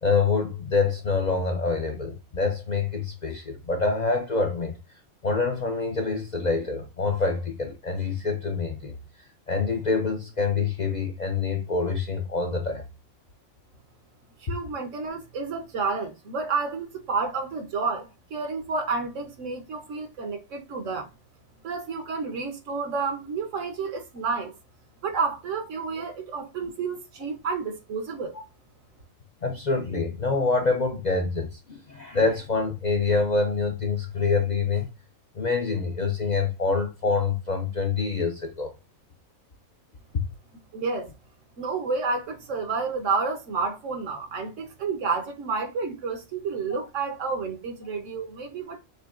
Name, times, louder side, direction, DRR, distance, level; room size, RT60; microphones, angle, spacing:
voice 1, 0.0-4.8 5.2-9.0 9.5-12.8 29.4-34.9 35.4-38.7, left 4 dB, 50° left, 0.6 m, -26 dB
voice 2, 14.4-21.1 21.6-24.5 25.0-28.4 40.7-41.1 41.6-48.8, right 4 dB, 70° right, 1.3 m, -30 dB
6.5 x 2.7 x 2.5 m
omnidirectional pair, 1.4 m